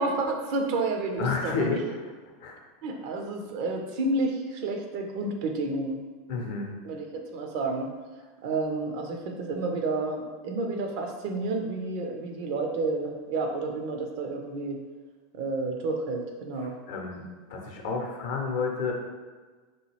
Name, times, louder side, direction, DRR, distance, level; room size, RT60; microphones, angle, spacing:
voice 1, 0.0-1.8 2.8-6.0 6.8-7.1 7.3-7.9 8.4-14.8 15.4-16.8, right 3 dB, 50° right, 3 dB, 0.5 m, -30 dB
voice 2, 1.2-2.0 2.4-2.6 6.3-6.7 16.6-17.2 17.5-18.9, left 4 dB, 55° left, 1 dB, 0.6 m, -30 dB
4.1 x 2.3 x 3.2 m, 1.4 s
figure-of-eight pair, 80°, 0 cm